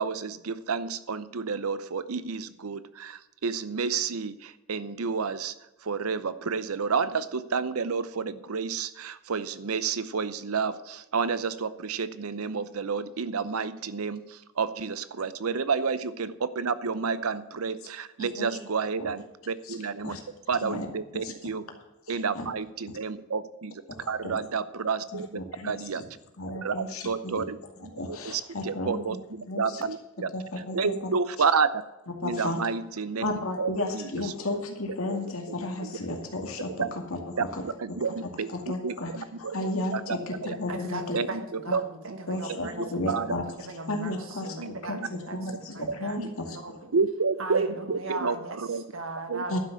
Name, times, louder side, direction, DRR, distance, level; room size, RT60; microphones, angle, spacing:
voice 1, 0.0-5.5 5.8-20.2 20.5-21.7 22.1-23.8 24.1-26.0 26.6-26.7 27.0-27.6 27.8-30.3 30.7-31.8 32.2-34.3 35.1-35.2 35.8-36.2 36.8-36.9 37.6-38.5 38.8-40.6 41.1-41.8 42.5-42.6 43.1-43.3 44.6-45.1 46.2-46.3 46.9-48.8 49.3-49.6, right 5 dB, 90° right, 15 dB, 0.7 m, -30 dB
voice 2, 22.1-22.5 23.9-24.4 25.1-25.8 26.4-27.4 27.9-29.0 29.5-29.8 30.3-30.9 32.2-32.6 33.2-36.8 37.1-37.6 38.5-39.1 39.4-41.2 41.7-41.8 42.3-43.4 43.8-46.9 49.5-49.6, left 2 dB, 80° left, 3 dB, 2.2 m, -33 dB
voice 3, 40.7-45.4 45.7-46.9 47.4-48.6 48.9-49.6, right 2 dB, 70° right, 6 dB, 1.6 m, -38 dB
11.5 x 6.1 x 8.1 m, 0.98 s
head